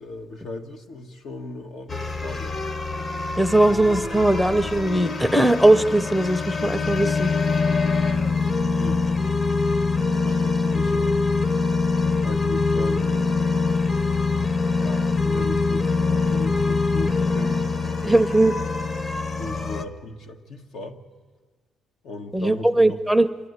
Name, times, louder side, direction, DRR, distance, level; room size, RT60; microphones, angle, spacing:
voice 1, 0.0-2.6 8.8-9.2 10.2-11.2 12.2-13.9 14.8-15.9 16.2-17.7 18.0-18.3 19.4-21.0 22.0-23.0, left 2 dB, 75° left, 4 dB, 1.6 m, -37 dB
sound 1, 1.9-19.8, left 4 dB, 35° left, 1.2 m, -24 dB
voice 2, 3.4-7.3 18.0-18.5 22.3-23.3, right 1 dB, ahead, 11 dB, 0.7 m, -19 dB
27.5 x 12.0 x 9.6 m, 1.4 s
cardioid pair, 90°, 0 cm